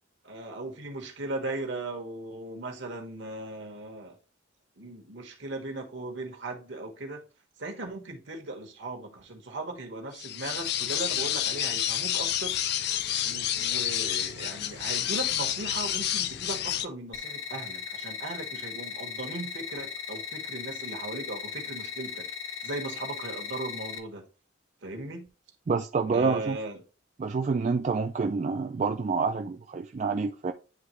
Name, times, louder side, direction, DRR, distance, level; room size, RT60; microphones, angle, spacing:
voice 1, 0.2-4.2 4.8-7.2 7.6-12.6 13.2-24.2 24.8-25.3 26.1-26.8, right 2 dB, 65° right, 1.4 m, -38 dB
sound 1, 10.2-16.8, left 11 dB, 55° left, 0.4 m, -29 dB
sound 2, 17.1-24.0, left 6 dB, 80° left, 0.8 m, -38 dB
voice 2, 25.7-26.6 27.2-30.5, right 4 dB, 35° right, 0.3 m, -28 dB
9.5 x 3.4 x 3.1 m
head